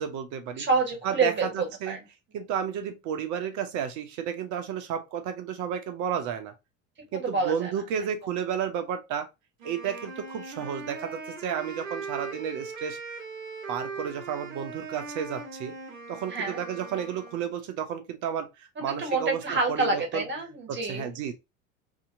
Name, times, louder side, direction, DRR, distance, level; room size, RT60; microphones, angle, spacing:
voice 1, 0.0-0.7 1.0-2.0 2.3-6.5 7.1-9.3 9.6-13.0 13.7-15.7 16.1-20.2 20.7-21.3, right 8 dB, 45° right, 0.9 m, -32 dB
voice 2, 0.6-2.0 7.1-7.7 10.6-10.7 16.3-16.6 18.8-21.1, right 3 dB, 30° right, 1.3 m, -28 dB
Wind instrument woodwind instrument, 9.6-17.5, right 4 dB, 75° right, 1.1 m, -40 dB
2.9 x 2.8 x 2.5 m
figure-of-eight pair, 75°, 40 cm